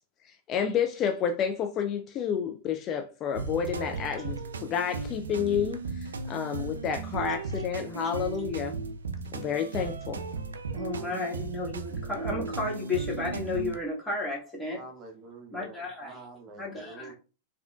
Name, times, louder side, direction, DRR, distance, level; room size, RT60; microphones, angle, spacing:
voice 1, 0.2-8.7 9.3-10.2, left 7 dB, 35° left, 0.3 m, -30 dB
sound 1, 3.4-13.8, right 4 dB, 80° right, 0.3 m, -35 dB
voice 2, 10.7-14.8 15.5-16.2 16.6-17.1, left 2 dB, 10° left, 1.5 m, -33 dB
voice 3, 14.7-17.1, right 2 dB, 35° right, 0.8 m, -47 dB
3.4 x 2.4 x 2.3 m
hypercardioid pair, 95°, 0 cm